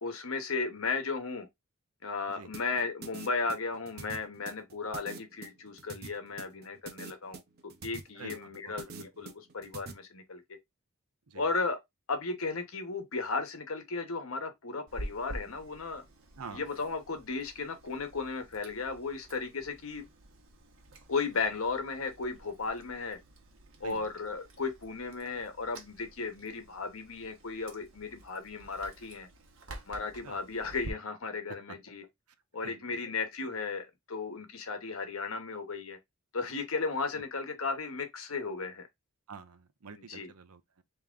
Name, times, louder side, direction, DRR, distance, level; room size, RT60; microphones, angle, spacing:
voice 1, 0.0-1.5 2.0-7.4 7.8-10.4 11.3-11.8 12.1-16.0 16.5-20.0 21.1-23.2 23.8-29.3 29.9-32.0 32.5-36.0 36.3-38.9 40.1-40.3, left 4 dB, 70° left, 1.0 m, -35 dB
sound 1, 2.5-9.9, right 4 dB, 45° right, 0.7 m, -45 dB
voice 2, 8.1-9.1 11.3-11.4 16.4-16.7 23.8-24.1 30.2-30.4 32.6-33.0 37.1-37.2 39.3-40.8, right 5 dB, 85° right, 0.7 m, -47 dB
Chewing mastication, 14.9-30.9, right 1 dB, 65° right, 1.1 m, -49 dB
3.5 x 3.0 x 3.7 m
head